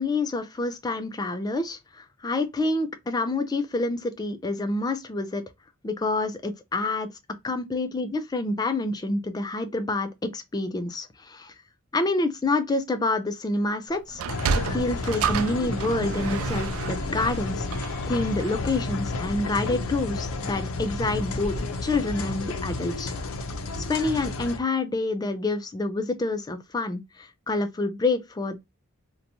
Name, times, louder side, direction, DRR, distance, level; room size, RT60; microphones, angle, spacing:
voice 1, 0.0-5.4 5.8-7.1 7.4-11.5 11.9-14.2 14.5-17.7 18.1-23.1 23.8-28.6, left 2 dB, 20° left, 0.3 m, -27 dB
Sliding door, 14.1-18.7, right 5 dB, 80° right, 0.4 m, -30 dB
sound 1, 14.3-24.6, left 2 dB, 85° left, 0.5 m, -31 dB
2.6 x 2.2 x 2.7 m
head